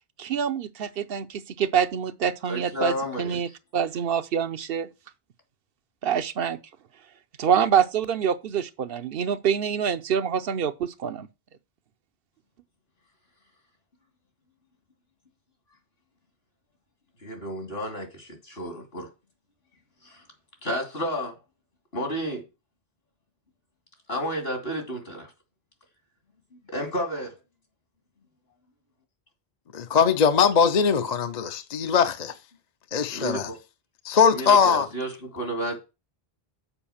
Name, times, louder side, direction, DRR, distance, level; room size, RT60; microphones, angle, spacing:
voice 1, 0.2-1.3 1.6-4.9 6.0-6.6 7.4-11.3, right 8 dB, 70° right, 0.9 m, -26 dB
voice 2, 2.5-3.4 17.2-19.1 20.0-20.2 20.6-21.3 21.9-22.4 24.1-25.3 26.6-27.3 33.1-33.6 34.3-35.8, equal, 75° left, 3.1 m, -31 dB
voice 3, 29.7-32.3 32.9-33.5 34.0-34.9, left 6 dB, 50° left, 0.7 m, -21 dB
7.0 x 4.9 x 7.1 m
omnidirectional pair, 1.0 m